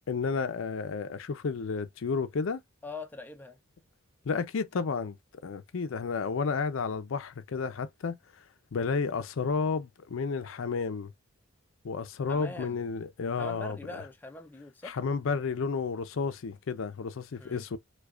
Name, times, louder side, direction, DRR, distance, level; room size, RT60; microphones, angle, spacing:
voice 1, 0.1-2.6 4.3-5.2 5.4-8.2 8.7-11.1 11.8-14.0 14.8-17.8, left 5 dB, 65° left, 0.5 m, -31 dB
voice 2, 2.8-3.6 12.3-12.8 13.4-15.0 17.4-17.6, left 3 dB, 10° left, 0.4 m, -42 dB
4.8 x 2.2 x 2.3 m
head